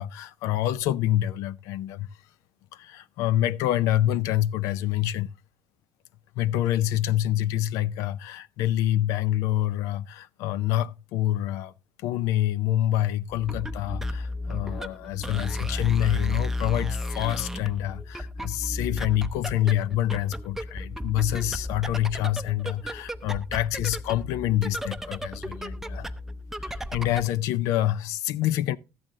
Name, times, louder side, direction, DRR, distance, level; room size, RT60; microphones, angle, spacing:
voice 1, 0.0-2.1 2.7-5.3 6.4-11.7 12.0-26.1 26.6-28.8, left 13 dB, 90° left, 0.5 m, -26 dB
sound 1, 13.3-27.4, left 1 dB, 5° right, 0.5 m, -34 dB
13.5 x 7.7 x 3.6 m
cardioid pair, 125°, 5 cm